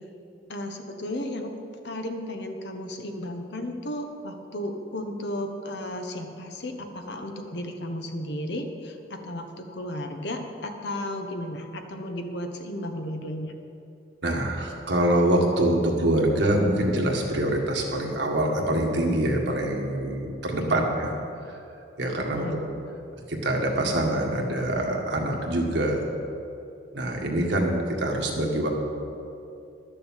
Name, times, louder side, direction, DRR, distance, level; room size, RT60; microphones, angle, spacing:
voice 1, 0.5-1.5 1.8-13.6 20.7-20.8 22.3-22.7, left 1 dB, 65° left, 5 dB, 1.2 m, -34 dB
voice 2, 14.2-21.1 21.5-21.6 22.0-22.4 23.3-26.0 26.9-28.7, right 1 dB, 65° right, 0 dB, 1.7 m, -25 dB
12.0 x 6.8 x 7.5 m, 2.7 s
head